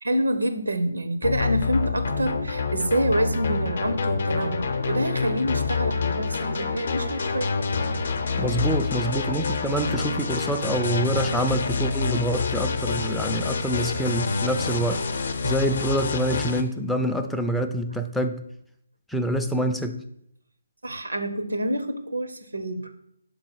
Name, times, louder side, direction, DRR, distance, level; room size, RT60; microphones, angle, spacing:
voice 1, 0.0-7.5 20.8-22.9, right 1 dB, 80° right, 9 dB, 0.7 m, -27 dB
sound 1, 1.2-16.6, left 4 dB, 55° left, 0.6 m, -27 dB
voice 2, 8.4-15.0 15.4-18.5 19.1-20.0, right 1 dB, ahead, 4 dB, 0.4 m, -26 dB
5.4 x 4.0 x 4.5 m, 0.74 s
figure-of-eight pair, 145°, 0 cm